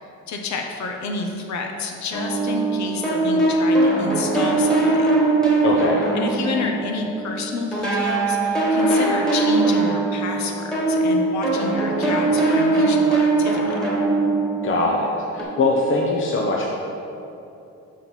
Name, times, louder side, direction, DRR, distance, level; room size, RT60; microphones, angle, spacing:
voice 1, 0.3-5.2 6.1-13.8, left 3 dB, 65° left, 3 dB, 0.9 m, -29 dB
sound 1, 2.1-7.4 7.7-15.4, right 2 dB, ahead, 1.6 m, -21 dB
voice 2, 5.6-6.0 14.6-16.7, left 2 dB, 40° left, -2 dB, 0.9 m, -22 dB
6.3 x 4.1 x 6.1 m, 2.8 s
cardioid pair, 90°, 30 cm